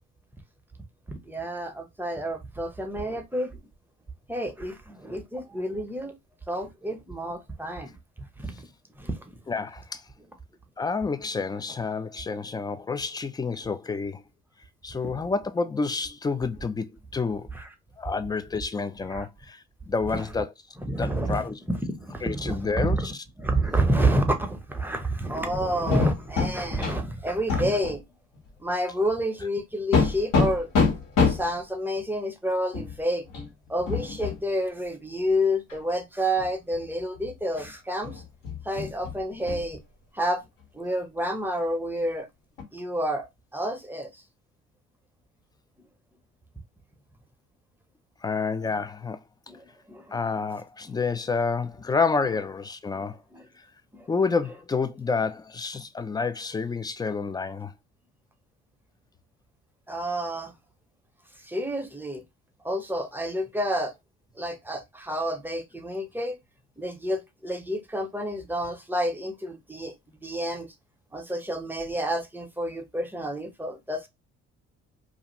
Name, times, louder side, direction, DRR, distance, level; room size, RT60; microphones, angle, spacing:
voice 1, 1.1-3.6 4.3-6.2 6.5-8.7 9.0-9.4 15.0-15.2 17.5-17.7 19.1-19.3 20.1-20.2 20.8-28.0 28.6-30.7 31.3-33.3 33.7-38.2 38.6-39.8 40.1-40.4 40.7-42.3 42.7-44.2 49.5-50.2 52.9-53.5 53.9-54.1 59.9-60.5 61.4-62.2 62.6-63.9 64.4-66.4 66.8-70.7 71.1-74.1, equal, 5° right, 0.7 m, -29 dB
voice 2, 9.5-10.0 10.8-14.2 14.8-17.5 18.0-20.5 21.0-21.5 22.2-23.0 48.2-49.2 50.1-53.2 54.1-57.7, left 4 dB, 15° left, 0.3 m, -29 dB
sound 1, 25.4-27.0 27.5-28.0 28.4-28.5 29.9-31.6 32.7-33.0 33.3-33.5 33.8-34.4 35.7-35.8 36.4-36.8 37.2-37.7 38.0-39.7 42.6-42.7, left 4 dB, 75° left, 1.4 m, -26 dB
2.6 x 2.4 x 2.9 m
hypercardioid pair, 60°, 33 cm